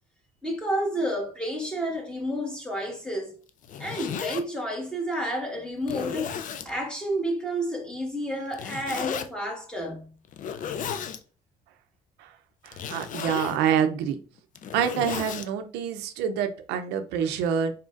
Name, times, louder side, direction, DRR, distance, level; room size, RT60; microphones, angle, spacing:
voice 1, 0.4-3.3 3.8-6.4 6.6-10.1, equal, 5° left, 1.5 m, -30 dB
Zipper (clothing), 3.5-4.4 5.1-5.2 5.8-6.7 8.5-9.3 10.3-11.2 12.7-13.6 14.4-15.5, left 8 dB, 50° left, 0.5 m, -34 dB
voice 2, 12.6-14.2 14.7-17.7, right 8 dB, 90° right, 0.5 m, -27 dB
4.2 x 3.9 x 2.5 m
cardioid pair, 110°, 17 cm